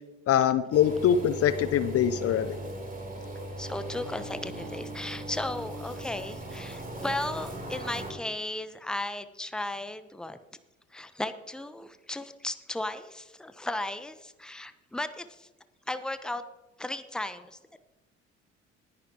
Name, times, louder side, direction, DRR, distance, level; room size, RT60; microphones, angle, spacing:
voice 1, 0.3-2.5, left 9 dB, 40° left, 13 dB, 0.7 m, -23 dB
sound 1, 0.7-8.1, right 1 dB, 25° right, 3.3 m, -38 dB
voice 2, 3.6-10.4 10.9-15.5 15.9-16.4 16.8-17.6, left 1 dB, ahead, 11 dB, 0.9 m, -35 dB
19.0 x 10.5 x 3.0 m, 1.1 s
figure-of-eight pair, 55°, 35 cm